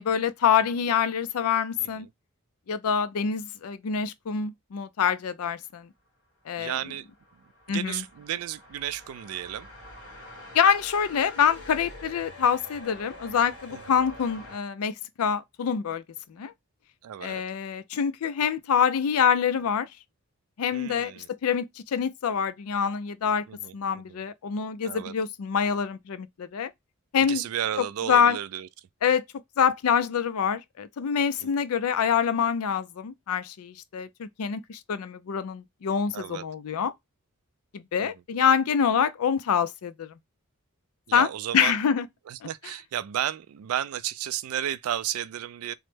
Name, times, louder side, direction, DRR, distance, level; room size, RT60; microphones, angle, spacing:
voice 1, 0.0-2.1 2.7-5.9 6.5-6.8 7.7-8.0 10.5-16.0 16.3-16.5 17.2-19.9 20.6-23.4 23.7-26.7 27.1-27.4 27.8-28.4 29.0-29.2 29.6-36.9 37.7-40.1 41.1-41.3 41.5-42.1 42.4-42.5, left 7 dB, 85° left, 0.4 m, -26 dB
voice 2, 6.6-7.1 7.7-9.7 13.7-13.8 17.0-17.4 20.7-21.3 23.5-24.2 24.8-25.1 27.3-28.7 31.4-31.5 36.1-36.4 38.0-38.1 41.1-41.8 42.3-45.7, right 11 dB, 75° right, 0.3 m, -33 dB
sound 1, 6.9-14.6, left 1 dB, 60° left, 1.5 m, -46 dB
3.1 x 2.1 x 3.2 m
head